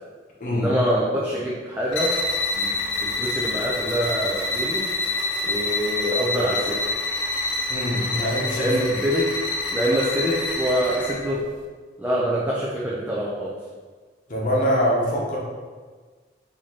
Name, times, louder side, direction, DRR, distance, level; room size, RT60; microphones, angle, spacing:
voice 1, 0.5-2.2 2.5-2.7 3.0-4.9 5.4-6.9 8.2-8.3 8.6-9.3 9.7-11.4 12.0-13.5, equal, 10° right, -7 dB, 0.4 m, -25 dB
sound 1, 1.9-11.3, left 2 dB, 80° left, 0.6 m, -27 dB
voice 2, 7.7-9.0 14.3-15.4, equal, 45° left, -5 dB, 1.0 m, -24 dB
4.8 x 2.9 x 2.9 m, 1.5 s
head